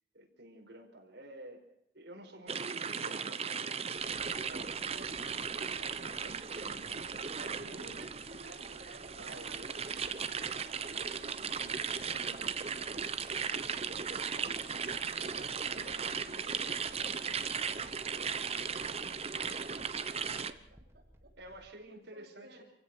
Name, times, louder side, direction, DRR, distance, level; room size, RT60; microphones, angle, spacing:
voice 1, 0.1-1.6 1.9-4.8 5.8-7.8 9.2-9.8 10.8-15.5 21.4-22.6, right 1 dB, 75° right, 1 dB, 5.0 m, -52 dB
sound 1, 2.5-20.5, right 6 dB, 35° right, 0.9 m, -37 dB
sound 2, 4.0-21.7, equal, 15° right, 2.0 m, -60 dB
voice 2, 4.8-5.9 7.3-11.3 14.8-21.3 21.9-22.6, right 1 dB, 60° right, -7 dB, 7.0 m, -55 dB
27.5 x 16.0 x 6.2 m, 0.81 s
head